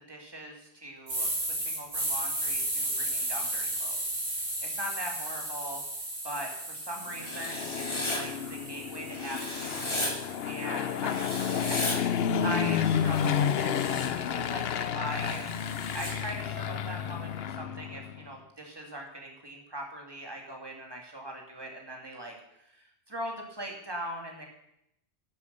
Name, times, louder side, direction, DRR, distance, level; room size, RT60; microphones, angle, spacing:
voice 1, 0.1-1.3 1.6-5.8 6.2-15.4 15.9-24.5, right 1 dB, 20° right, 1 dB, 2.3 m, -41 dB
sound 1, 1.1-9.1 9.6-13.8, right 1 dB, 75° right, 3.7 m, -35 dB
Fixed-wing aircraft airplane, 7.2-18.3, left 8 dB, 70° left, 0.9 m, -31 dB
Writing, 7.2-8.2 9.1-10.1 11.1-12.0 13.0-14.1 15.1-16.1, left 1 dB, 25° left, 2.0 m, -35 dB
12.0 x 8.3 x 6.7 m, 0.78 s
omnidirectional pair, 1.1 m